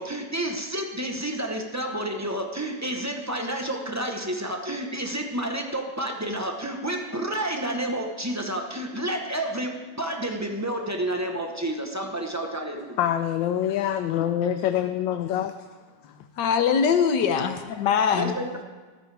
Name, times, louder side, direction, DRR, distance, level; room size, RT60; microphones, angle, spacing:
voice 1, 0.0-13.0 18.1-18.6, right 1 dB, 20° right, 0.4 m, -30 dB
voice 2, 13.0-15.5, left 10 dB, 85° left, 1.3 m, -25 dB
voice 3, 16.4-18.4, left 7 dB, 70° left, 1.5 m, -22 dB
14.5 x 13.0 x 3.3 m
omnidirectional pair, 2.0 m